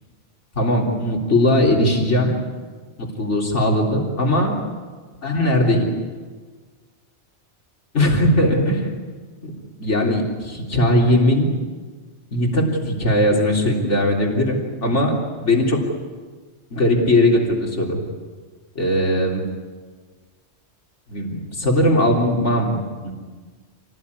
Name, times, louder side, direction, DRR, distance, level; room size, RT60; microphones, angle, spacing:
voice 1, 0.6-2.3 3.0-4.6 5.2-5.9 7.9-8.9 9.4-9.5 9.8-11.5 12.3-15.8 16.7-18.0 18.8-19.4 21.1-23.1, left 1 dB, 90° left, -1 dB, 4.0 m, -19 dB
28.0 x 19.0 x 9.7 m, 1.5 s
omnidirectional pair, 1.2 m